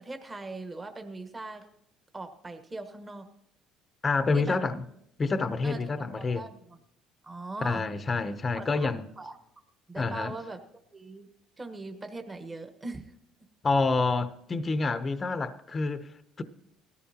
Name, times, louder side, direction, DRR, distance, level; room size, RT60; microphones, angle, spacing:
voice 1, 0.0-1.7 2.1-3.3 4.3-4.6 5.6-6.8 7.2-7.9 8.5-9.4 9.9-10.6 10.9-11.3 11.6-13.1, right 2 dB, 20° right, 1.3 m, -40 dB
voice 2, 4.0-4.8 5.2-6.4 7.6-9.1 10.0-10.3 13.6-16.4, left 3 dB, 25° left, 0.7 m, -28 dB
19.0 x 14.0 x 2.9 m
cardioid pair, 115°, 0 cm